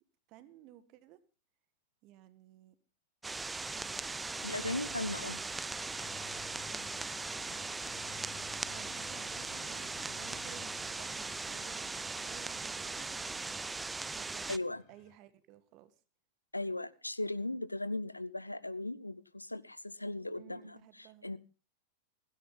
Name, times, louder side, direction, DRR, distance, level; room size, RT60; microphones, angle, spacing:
voice 1, 0.3-1.2 2.0-2.8 8.7-13.7 14.1-14.6 14.9-16.0 20.4-21.3, right 13 dB, 40° right, 13 dB, 1.7 m, -56 dB
sound 1, 3.2-14.6, right 3 dB, 10° right, 0.6 m, -39 dB
sound 2, 3.8-15.2, left 17 dB, 45° left, 0.7 m, -56 dB
voice 2, 4.4-5.4 14.5-14.8 16.5-21.4, left 2 dB, 85° left, 19 dB, 0.8 m, -38 dB
16.5 x 16.0 x 3.8 m, 0.34 s
figure-of-eight pair, 90°, 0 cm